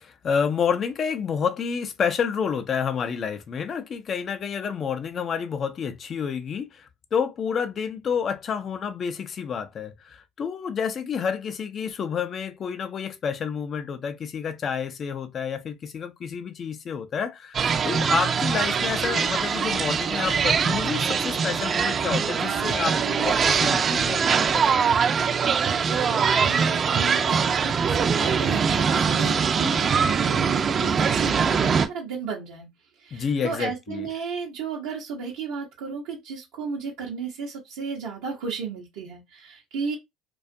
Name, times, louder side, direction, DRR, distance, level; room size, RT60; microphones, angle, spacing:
voice 1, 0.0-17.6 17.8-24.9 33.1-34.1, left 7 dB, 45° left, 0.5 m, -29 dB
sound 1, 17.5-31.9, right 6 dB, 40° right, 0.5 m, -23 dB
voice 2, 25.9-32.7 33.0-40.0, right 5 dB, 75° right, 0.7 m, -34 dB
2.4 x 2.3 x 2.6 m
hypercardioid pair, 70°, 0 cm